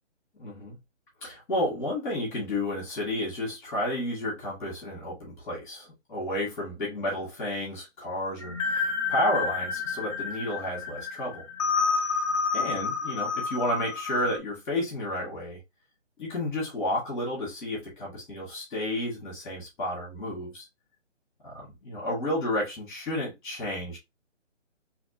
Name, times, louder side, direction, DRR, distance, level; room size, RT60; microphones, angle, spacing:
voice 1, 0.4-0.8 1.2-11.4 12.5-15.6 16.2-20.7 21.4-24.0, left 1 dB, 10° left, 1.6 m, -31 dB
sound 1, 8.4-14.4, left 5 dB, 25° left, 0.9 m, -29 dB
3.3 x 2.9 x 2.7 m
hypercardioid pair, 165°, 37 cm